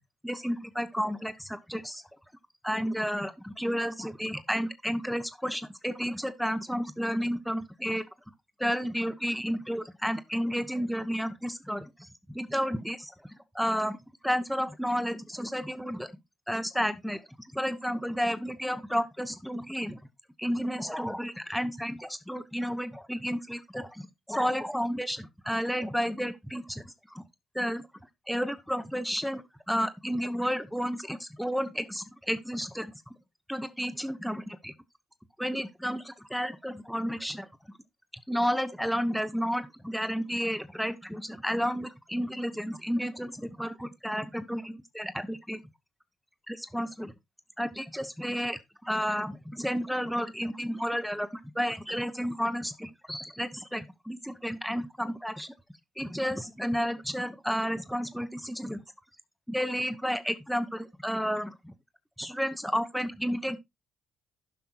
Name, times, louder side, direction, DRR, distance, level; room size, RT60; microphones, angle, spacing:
voice 1, 0.2-2.0 2.6-8.0 8.6-13.1 13.5-14.0 14.2-16.1 16.5-20.0 20.4-27.2 27.5-27.8 28.3-29.4 29.7-33.1 33.5-34.7 35.4-37.5 38.3-45.6 46.5-47.1 47.6-51.3 51.5-55.5 56.0-58.8 59.5-61.7 62.2-63.6, equal, ahead, 1.0 m, -32 dB
16.0 x 5.7 x 2.4 m
hypercardioid pair, 50°, 0 cm